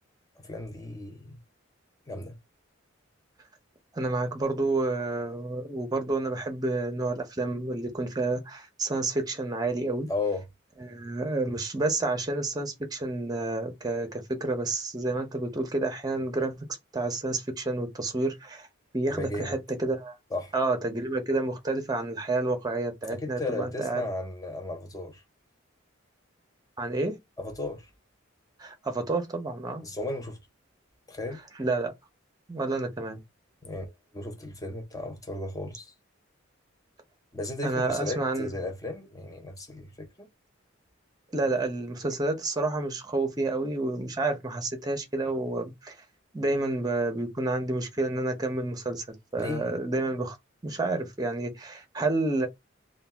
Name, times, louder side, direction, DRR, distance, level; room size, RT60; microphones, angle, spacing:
voice 1, 0.4-1.4 2.1-2.4 10.1-10.5 19.1-19.6 20.3-20.5 23.1-25.2 27.4-27.9 29.8-30.4 31.1-31.4 33.6-35.9 37.3-40.3 41.4-41.5 49.4-49.7, left 2 dB, 20° left, 0.6 m, -35 dB
voice 2, 3.9-10.1 10.8-16.7 16.9-18.7 18.9-20.2 20.5-24.0 26.8-27.2 28.6-29.8 31.6-31.9 32.5-33.2 37.6-38.5 41.3-46.0 46.3-49.1 49.3-50.4 50.6-52.5, right 2 dB, 20° right, 0.7 m, -29 dB
2.6 x 2.2 x 3.3 m
head